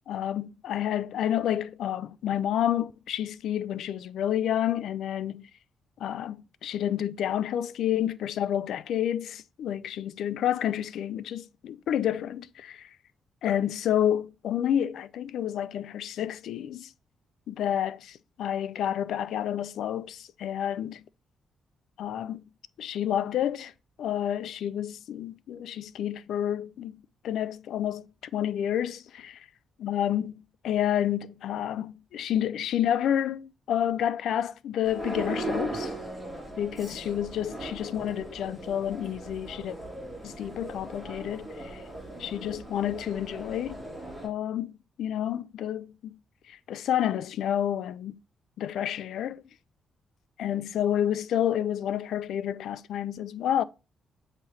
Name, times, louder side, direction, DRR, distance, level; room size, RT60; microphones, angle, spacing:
voice 1, 0.1-5.5 6.0-12.9 13.4-16.9 17.5-21.0 22.0-22.4 22.8-23.7 24.0-29.4 29.8-30.3 30.6-35.9 36.6-39.8 40.2-41.8 42.2-43.8 44.2-44.7 45.0-46.2 46.5-48.2 48.6-49.4 50.4-53.6, left 10 dB, 85° left, 0.3 m, -29 dB
sound 1, 34.8-44.3, right 2 dB, 5° right, 2.2 m, -38 dB
8.1 x 2.9 x 4.1 m
cardioid pair, 125°, 0 cm